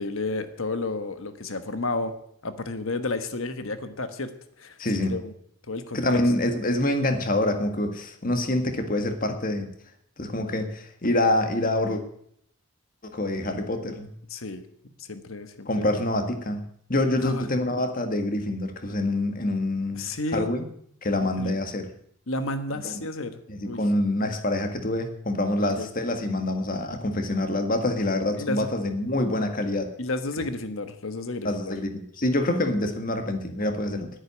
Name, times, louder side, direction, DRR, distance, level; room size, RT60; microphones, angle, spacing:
voice 1, 0.0-2.1 2.4-4.3 4.6-4.8 5.1-5.3 5.7-6.2 14.3-15.8 17.2-17.5 19.9-20.5 21.2-21.5 22.3-23.8 25.7-25.9 28.4-28.7 30.0-31.7 32.4-32.5, left 2 dB, 65° left, 9 dB, 1.3 m, -32 dB
voice 2, 4.8-5.1 5.9-9.7 10.2-12.0 13.1-14.1 15.7-16.6 16.9-20.6 21.0-21.9 22.8-22.9 23.5-29.9 31.4-34.1, left 1 dB, 40° left, 6 dB, 1.8 m, -26 dB
10.5 x 9.9 x 9.8 m, 0.68 s
head